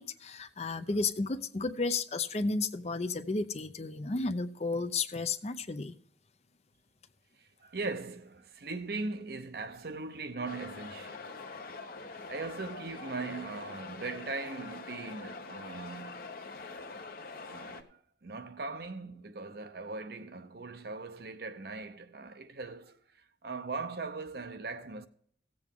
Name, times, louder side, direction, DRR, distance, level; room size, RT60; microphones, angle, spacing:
voice 1, 0.0-6.0, left 3 dB, 35° left, 0.6 m, -33 dB
voice 2, 7.4-11.3 12.3-16.3 17.5-23.0 23.4-25.1, right 3 dB, 55° right, 0.7 m, -40 dB
sound 1, 10.5-17.8, left 3 dB, 50° left, 1.0 m, -44 dB
16.5 x 7.8 x 3.6 m
head